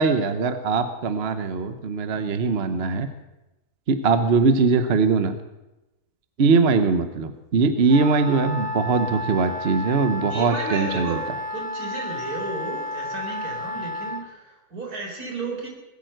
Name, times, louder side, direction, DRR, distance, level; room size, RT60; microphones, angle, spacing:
voice 1, 0.0-3.1 3.9-5.4 6.4-11.2, right 4 dB, 50° right, 9 dB, 1.0 m, -21 dB
Wind instrument woodwind instrument, 7.9-14.2, left 1 dB, 5° left, 1.5 m, -32 dB
voice 2, 10.3-11.2 11.5-15.7, right 3 dB, 75° right, 0 dB, 4.6 m, -33 dB
20.5 x 9.0 x 7.8 m, 0.98 s
omnidirectional pair, 1.6 m